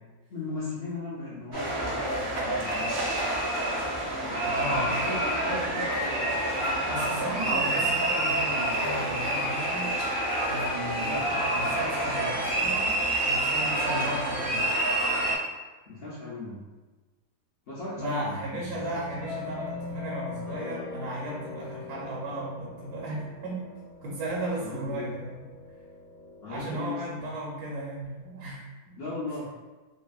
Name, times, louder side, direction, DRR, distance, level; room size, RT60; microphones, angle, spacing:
voice 1, 0.3-3.0 4.0-7.9 11.0-11.2 15.9-16.6 17.7-18.8 24.6-25.1 26.4-27.3 29.0-29.5, left 2 dB, 80° left, -7 dB, 0.5 m, -38 dB
sound 1, 1.5-15.4, right 1 dB, 50° right, 0.3 m, -28 dB
sound 2, 2.0-13.1, right 2 dB, 65° right, 0.7 m, -44 dB
voice 2, 4.4-5.0 6.8-9.9 10.5-14.8 18.0-23.7 24.0-25.4 26.5-29.0, right 1 dB, 80° right, -5 dB, 1.2 m, -35 dB
sound 3, 18.8-26.7, left 3 dB, 55° left, 1.0 m, -40 dB
2.8 x 2.5 x 2.3 m, 1.2 s
omnidirectional pair, 1.7 m